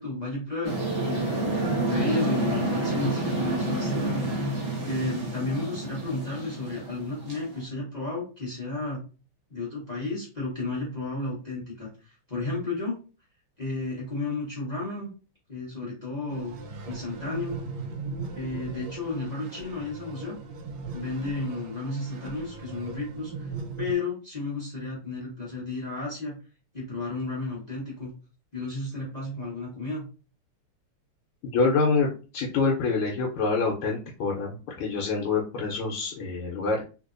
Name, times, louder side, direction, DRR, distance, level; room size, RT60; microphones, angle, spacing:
voice 1, 0.0-1.4 1.8-9.0 9.5-12.9 13.6-15.1 15.5-16.6 16.9-17.6 18.3-20.3 20.9-23.5 23.8-26.4 26.7-28.1 28.5-30.0, left 3 dB, 40° left, -6 dB, 0.6 m, -33 dB
sound 1, 0.6-7.6, right 2 dB, 35° right, 1.1 m, -29 dB
sound 2, 16.3-23.9, right 4 dB, 70° right, 1.2 m, -38 dB
voice 2, 31.4-32.1 32.3-36.8, left 4 dB, 80° left, -2 dB, 1.5 m, -26 dB
3.3 x 2.9 x 2.4 m, 0.34 s
omnidirectional pair, 2.4 m